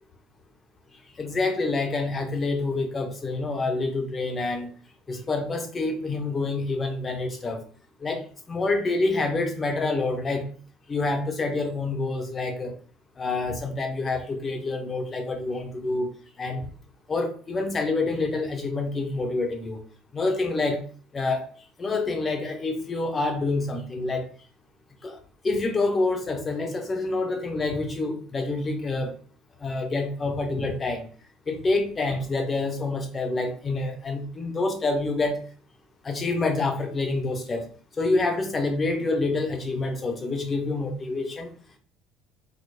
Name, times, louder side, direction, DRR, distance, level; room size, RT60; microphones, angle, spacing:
voice 1, 1.2-4.7 5.1-7.6 8.0-10.5 10.9-12.7 13.2-16.1 16.4-16.7 17.1-19.8 20.1-20.8 21.1-21.5 21.8-24.3 25.0-25.2 25.4-29.1 29.6-31.0 31.5-35.4 36.0-37.7 38.0-41.5, left 3 dB, 30° left, 5 dB, 0.8 m, -27 dB
4.0 x 3.0 x 2.2 m, 0.43 s
hypercardioid pair, 70°, 0 cm